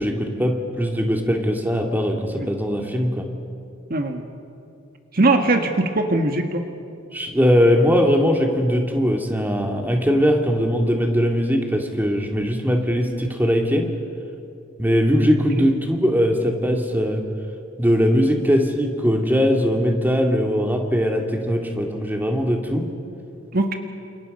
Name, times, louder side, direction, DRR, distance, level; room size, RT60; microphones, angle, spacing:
voice 1, 0.0-3.3 7.1-13.9 14.8-17.2 17.8-22.8, equal, 10° right, 2 dB, 2.3 m, -20 dB
voice 2, 3.9-4.2 5.1-6.6 23.5-23.7, right 2 dB, 50° right, 5 dB, 1.5 m, -20 dB
29.0 x 28.0 x 5.5 m, 2.6 s
head